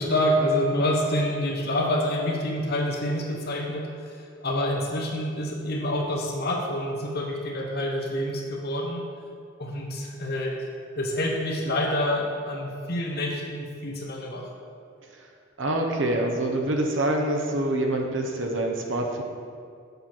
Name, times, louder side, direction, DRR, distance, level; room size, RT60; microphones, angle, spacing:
voice 1, 0.0-3.9 4.4-9.0 9.6-10.6 11.0-14.5, left 1 dB, 50° left, 0 dB, 1.1 m, -27 dB
voice 2, 15.6-19.2, right 1 dB, 75° right, 2 dB, 0.9 m, -26 dB
6.6 x 6.4 x 4.4 m, 2.3 s
head